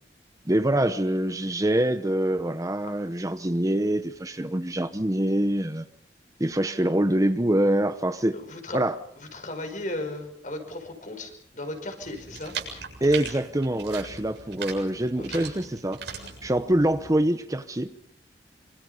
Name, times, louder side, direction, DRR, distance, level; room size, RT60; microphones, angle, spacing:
voice 1, 0.5-5.9 6.4-8.4 8.7-8.9 13.0-16.0 16.4-17.9, right 1 dB, 20° right, 0.9 m, -25 dB
voice 2, 8.3-8.8 9.2-12.5 15.2-15.5, left 1 dB, 45° left, 5.4 m, -36 dB
sound 1, 12.0-17.1, right 6 dB, 75° right, 7.4 m, -39 dB
27.0 x 25.5 x 5.5 m
head